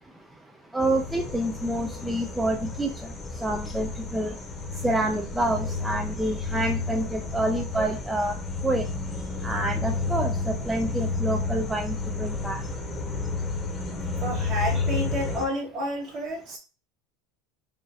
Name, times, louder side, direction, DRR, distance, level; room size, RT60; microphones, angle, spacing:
voice 1, 0.7-2.9 3.4-4.3 4.8-8.3 8.6-8.8 9.4-12.6 14.7-14.8, right 1 dB, 5° right, 3 dB, 0.4 m, -27 dB
sound 1, 0.8-15.4, left 3 dB, 15° left, 0.9 m, -31 dB
voice 2, 14.2-16.6, equal, 45° right, -2 dB, 2.0 m, -30 dB
4.8 x 2.6 x 2.7 m, 0.35 s
supercardioid pair, 130°, 0 cm